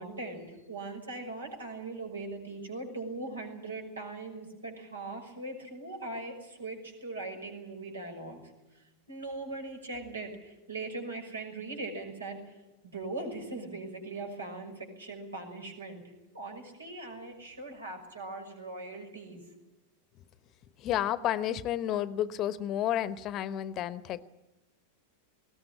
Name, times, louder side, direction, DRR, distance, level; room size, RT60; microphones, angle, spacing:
voice 1, 0.0-8.4 8.7-12.6 12.8-19.4, right 2 dB, 75° right, 4 dB, 6.1 m, -40 dB
voice 2, 20.8-24.2, left 11 dB, 35° left, 17 dB, 0.9 m, -31 dB
20.5 x 18.0 x 10.0 m, 1.0 s
figure-of-eight pair, 90°, 0 cm